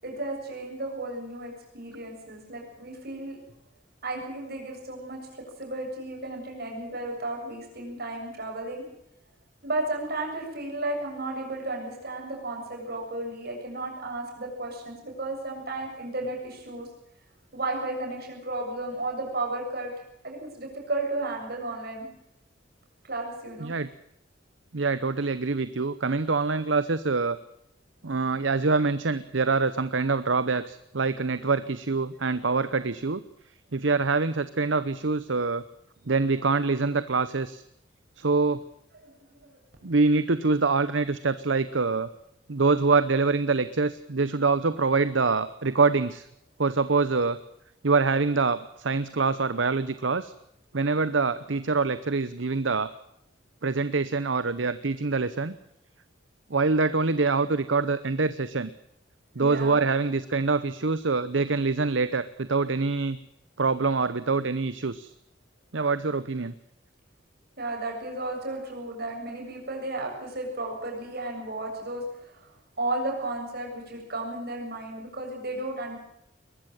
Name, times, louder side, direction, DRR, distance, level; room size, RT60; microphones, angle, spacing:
voice 1, 0.0-3.4 4.0-5.2 5.6-8.9 9.6-16.9 17.5-19.9 20.2-22.1 23.0-23.7 39.0-39.1 39.4-39.6 59.4-59.8 67.6-76.0, right 2 dB, 55° right, 1 dB, 7.4 m, -33 dB
voice 2, 24.7-27.4 28.0-33.2 33.7-35.6 36.1-37.6 38.2-38.6 39.8-42.1 42.5-46.3 46.6-47.4 47.8-50.3 50.7-52.9 53.6-55.5 56.5-58.7 59.4-63.2 63.6-65.1 65.7-66.5, right 4 dB, 70° right, 14 dB, 0.9 m, -25 dB
21.5 x 14.5 x 9.0 m, 0.79 s
head